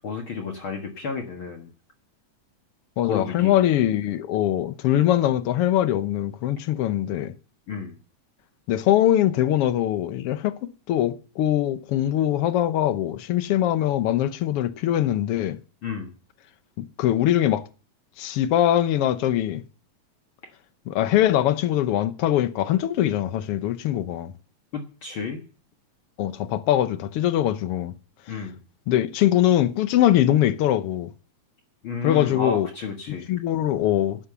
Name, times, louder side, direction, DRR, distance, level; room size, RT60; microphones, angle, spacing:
voice 1, 0.0-1.7 3.0-3.6 7.7-7.9 15.8-16.1 24.7-25.4 28.3-28.6 31.8-33.3, left 5 dB, 50° left, 2.1 m, -32 dB
voice 2, 3.0-7.3 8.7-10.6 10.9-15.6 16.8-17.7 18.2-19.6 20.9-24.3 26.2-27.9 28.9-31.1 32.0-32.7 33.3-34.3, left 12 dB, 65° left, 1.6 m, -22 dB
12.0 x 9.9 x 6.9 m
omnidirectional pair, 3.4 m